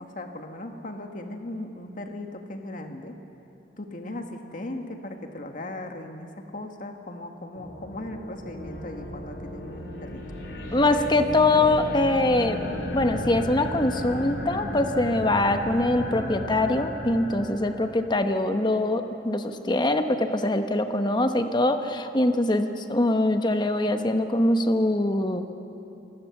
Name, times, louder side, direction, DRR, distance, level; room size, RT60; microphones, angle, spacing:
voice 1, 0.0-3.1 3.8-6.3 6.5-10.2, left 1 dB, 50° left, 4 dB, 1.8 m, -37 dB
sound 1, 7.5-18.1, equal, 80° left, 3.9 m, -34 dB
voice 2, 10.7-12.6 12.9-25.4, left 2 dB, 25° left, 7 dB, 1.1 m, -23 dB
28.0 x 17.5 x 7.2 m, 2.8 s
head